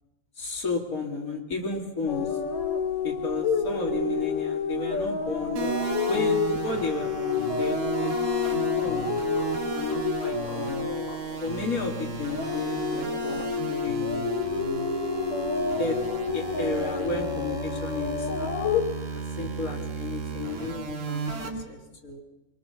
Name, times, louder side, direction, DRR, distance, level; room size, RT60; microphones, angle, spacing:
voice 1, 0.4-2.4 3.0-8.1 8.4-9.2 9.7-10.9 11.4-14.9 15.8-18.7 19.1-22.2, left 3 dB, 25° left, 1 dB, 2.6 m, -33 dB
sound 1, 2.1-11.9 12.2-18.8, left 5 dB, 70° left, 3.2 m, -29 dB
sound 2, 5.6-21.5, right 6 dB, 90° right, 4.6 m, -34 dB
24.0 x 23.5 x 7.0 m, 1.1 s
omnidirectional pair, 4.1 m